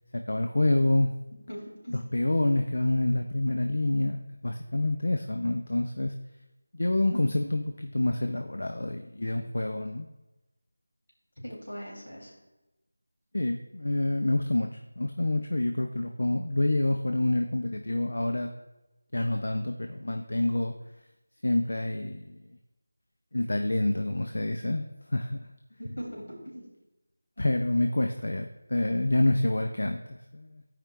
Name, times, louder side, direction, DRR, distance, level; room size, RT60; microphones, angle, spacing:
voice 1, 0.1-1.1 2.1-6.1 6.7-10.1 13.3-14.7 15.0-18.5 19.1-20.7 21.4-22.4 23.3-24.8 25.1-25.5 27.4-30.0 30.3-30.6, left 1 dB, 60° left, 4 dB, 0.5 m, -27 dB
voice 2, 1.5-2.1 8.1-8.2 11.4-12.3 25.8-26.7, equal, 75° left, -3 dB, 2.8 m, -40 dB
14.5 x 5.0 x 2.3 m, 1.0 s
figure-of-eight pair, 180°, 0 cm